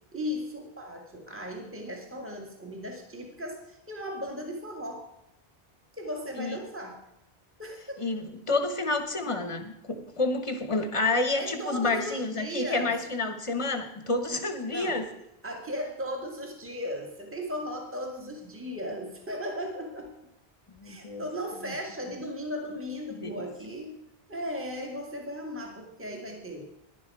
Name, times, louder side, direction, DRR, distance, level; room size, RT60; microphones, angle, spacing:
voice 1, 0.1-5.1 5.9-7.0 7.6-8.0 11.4-12.9 14.7-15.0 15.4-20.1 20.8-23.9 24.3-26.6, equal, 10° right, 1 dB, 1.7 m, -36 dB
voice 2, 8.0-15.0 20.7-21.2 21.6-21.7 23.2-23.3, left 3 dB, 30° left, 7 dB, 1.2 m, -29 dB
11.5 x 10.5 x 4.7 m, 0.83 s
omnidirectional pair, 1.1 m